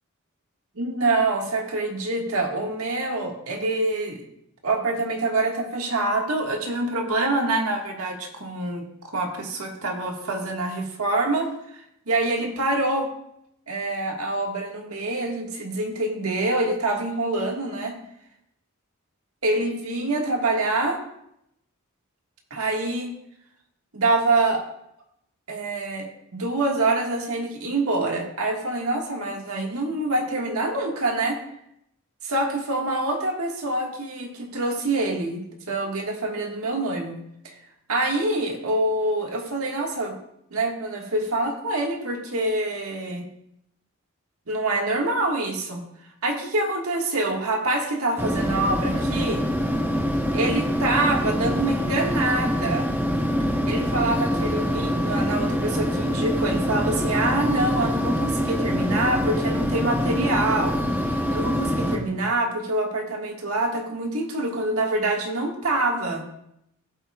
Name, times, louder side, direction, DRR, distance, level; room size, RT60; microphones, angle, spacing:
voice 1, 0.8-4.2 4.6-13.1 13.7-17.9 19.4-21.0 22.5-23.1 23.9-24.6 25.5-31.4 32.2-37.2 37.4-37.5 37.9-40.1 40.5-43.2 44.5-45.8 46.2-49.4 50.3-52.9 53.7-60.8 61.3-66.2, right 2 dB, 85° right, 2 dB, 1.7 m, -26 dB
sound 1, 48.2-62.0, equal, 10° right, 0.8 m, -25 dB
15.5 x 7.9 x 2.3 m, 0.77 s
head